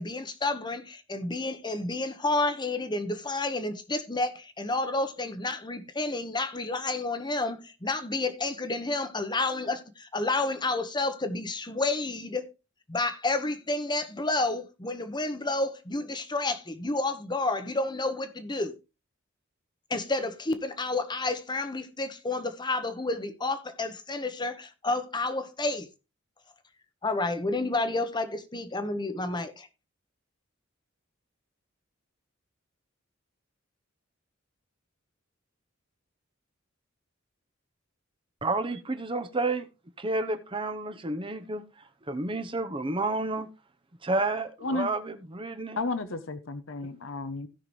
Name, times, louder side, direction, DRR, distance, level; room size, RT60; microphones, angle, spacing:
voice 1, 0.0-12.5 12.9-18.7 19.9-25.9 27.0-29.7, left 2 dB, 20° left, 1.1 m, -30 dB
voice 2, 38.4-39.7 40.0-41.6 42.1-43.5 44.0-45.8, right 2 dB, 25° right, 0.9 m, -30 dB
voice 3, 45.8-47.5, left 2 dB, 70° left, 0.9 m, -32 dB
16.5 x 5.9 x 3.2 m
head